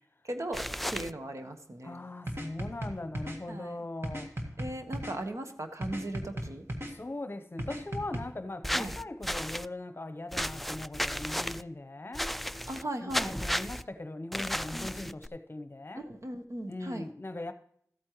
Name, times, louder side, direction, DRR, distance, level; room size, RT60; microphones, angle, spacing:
voice 1, 0.3-0.6 0.9-2.0 3.5-3.8 4.6-6.6 8.7-8.9 12.7-13.3 14.7-14.9 16.2-17.1, right 1 dB, 60° right, 1.2 m, -37 dB
sound 1, 0.5-1.1 8.6-9.7 10.3-11.6 12.1-12.8 13.1-13.8 14.3-15.3, equal, ahead, 0.3 m, -33 dB
voice 2, 1.8-4.3 6.8-12.3 13.0-16.1 16.7-17.5, left 2 dB, 40° left, 0.8 m, -40 dB
sound 2, 2.3-3.4 4.0-5.2 5.8-6.9 7.6-8.2, equal, 40° right, 1.7 m, -36 dB
14.0 x 8.6 x 3.1 m
wide cardioid pair, 50°, 6 cm